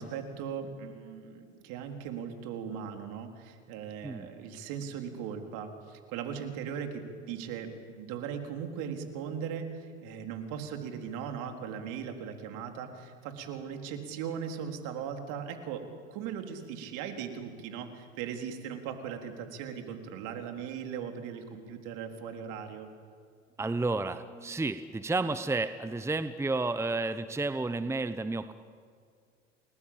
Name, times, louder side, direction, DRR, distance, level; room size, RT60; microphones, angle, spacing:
voice 1, 0.0-15.8 16.1-22.9, right 7 dB, 60° right, 5 dB, 4.1 m, -38 dB
voice 2, 23.6-28.5, right 3 dB, 5° right, 11 dB, 1.0 m, -31 dB
29.5 x 20.5 x 9.0 m, 2.1 s
hypercardioid pair, 90°, 36 cm